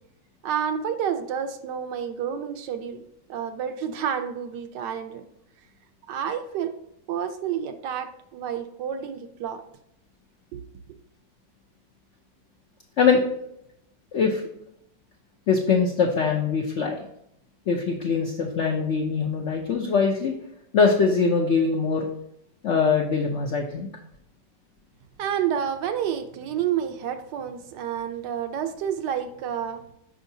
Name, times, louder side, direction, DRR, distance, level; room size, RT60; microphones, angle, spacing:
voice 1, 0.4-3.0 3.3-5.2 6.1-6.7 7.1-9.6 10.5-10.6 25.2-29.8, right 8 dB, 75° right, 8 dB, 1.2 m, -29 dB
voice 2, 14.1-14.4 15.5-17.0 17.7-20.3 20.7-22.1 22.6-23.9, left 5 dB, 70° left, 1 dB, 0.6 m, -22 dB
6.3 x 5.7 x 2.7 m, 0.78 s
omnidirectional pair, 1.9 m